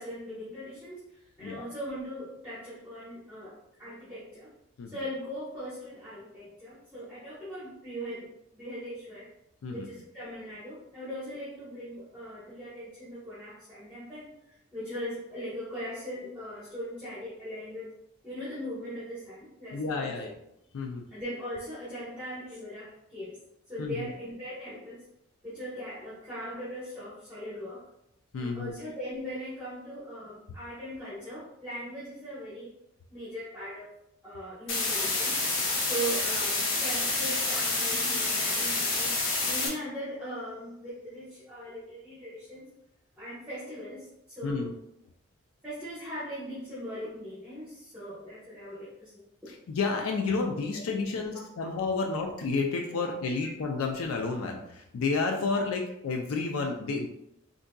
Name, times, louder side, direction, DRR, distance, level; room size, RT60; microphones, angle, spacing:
voice 1, 0.0-4.5 4.9-9.3 9.7-18.0 18.2-20.2 21.1-23.4 23.7-25.0 25.4-27.8 28.4-32.7 33.1-33.9 34.2-35.4 35.8-39.1 39.5-42.6 43.2-44.7 45.6-49.1 50.7-50.8 52.9-53.0 53.4-53.5 55.5-55.6, equal, 5° right, -11 dB, 1.0 m, -40 dB
voice 2, 19.7-20.3 20.7-21.1 23.8-24.1 28.3-28.8 44.4-44.7 49.7-57.1, left 4 dB, 85° left, 2 dB, 0.4 m, -30 dB
sound 1, 34.7-39.7, left 3 dB, 65° left, 0.8 m, -28 dB
3.6 x 2.6 x 2.2 m, 0.80 s
head